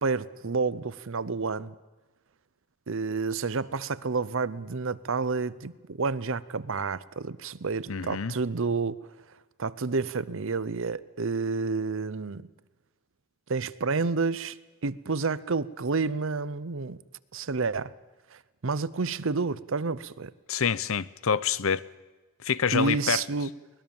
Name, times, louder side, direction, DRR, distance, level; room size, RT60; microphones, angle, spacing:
voice 1, 0.0-1.8 2.9-9.0 9.6-12.5 13.5-14.6 14.8-17.0 17.3-17.9 18.3-20.3 22.7-23.5, right 4 dB, 60° right, 0.7 m, -29 dB
voice 2, 7.9-8.3 20.5-21.8 22.4-23.2, left 6 dB, 65° left, 0.7 m, -27 dB
23.5 x 20.0 x 7.2 m
head